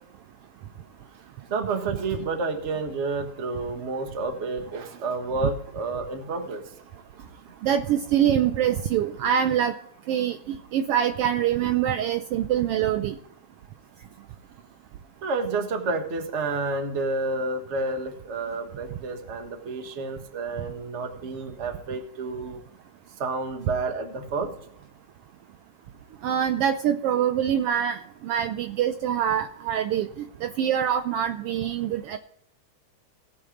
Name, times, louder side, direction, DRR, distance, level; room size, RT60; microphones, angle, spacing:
voice 1, 1.5-6.6 7.2-7.3 15.2-22.6 23.2-24.5, right 3 dB, 40° right, 6 dB, 1.0 m, -30 dB
voice 2, 7.6-9.7 10.1-13.1 26.2-30.1 30.4-32.2, right 9 dB, 90° right, 8 dB, 1.3 m, -24 dB
17.5 x 6.5 x 3.8 m, 0.72 s
omnidirectional pair, 3.3 m